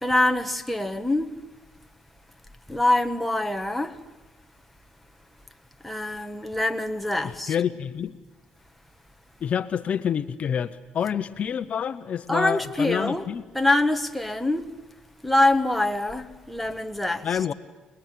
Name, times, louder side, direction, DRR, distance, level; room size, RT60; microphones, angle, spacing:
voice 1, 0.0-1.3 2.7-4.0 5.8-7.5 12.3-13.3 13.5-14.7 15.2-17.4, left 2 dB, ahead, 1.7 m, -24 dB
voice 2, 7.5-8.2 9.4-13.4 17.2-17.5, left 8 dB, 50° left, 1.0 m, -27 dB
28.0 x 21.0 x 9.4 m
cardioid pair, 95°, 3 cm